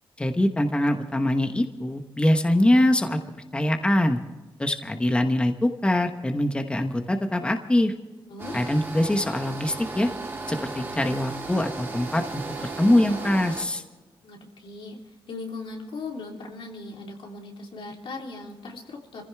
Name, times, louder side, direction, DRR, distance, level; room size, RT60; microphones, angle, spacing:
voice 1, 0.2-3.2 3.5-4.2 4.6-7.9 8.5-10.1 10.5-12.4 12.8-13.8, left 1 dB, 10° left, 6 dB, 1.0 m, -23 dB
voice 2, 8.3-8.6 14.2-15.0 15.3-19.2, left 3 dB, 85° left, 0 dB, 3.2 m, -38 dB
sound 1, 8.4-13.7, right 3 dB, 25° right, 2.3 m, -35 dB
26.5 x 15.5 x 3.5 m, 1.2 s
wide cardioid pair, 155°, 9 cm